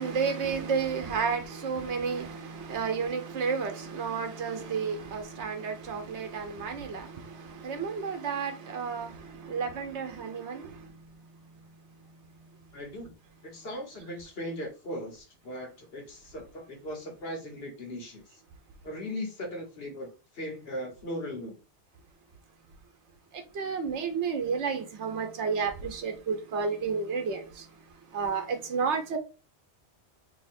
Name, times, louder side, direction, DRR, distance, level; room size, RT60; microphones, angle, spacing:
voice 1, 0.0-7.0 7.6-9.1 9.5-10.6 23.6-27.4 28.1-29.2, right 5 dB, 85° right, 1.1 m, -31 dB
voice 2, 12.7-13.1 13.4-18.2 18.8-21.6, left 1 dB, 60° left, 1.4 m, -38 dB
3.0 x 2.8 x 4.2 m
omnidirectional pair, 1.1 m